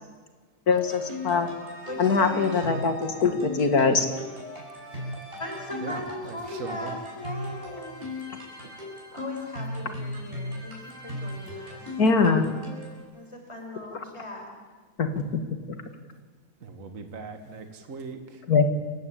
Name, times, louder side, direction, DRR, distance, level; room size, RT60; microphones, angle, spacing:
voice 1, 0.7-1.5 2.0-4.1 12.0-12.4 13.9-14.0 15.0-15.4 15.7-15.8 18.5-18.6, left 4 dB, 80° left, 7 dB, 2.5 m, -22 dB
sound 1, 0.7-13.0, left 2 dB, 40° right, 7.7 m, -38 dB
voice 2, 1.9-2.6 5.4-8.0 9.1-11.9 13.1-14.5, left 1 dB, 20° left, 2 dB, 5.0 m, -38 dB
voice 3, 5.8-7.0 8.6-8.7 16.6-18.4, right 4 dB, 60° right, 6 dB, 2.1 m, -39 dB
29.5 x 15.5 x 8.6 m, 1.4 s
omnidirectional pair, 1.6 m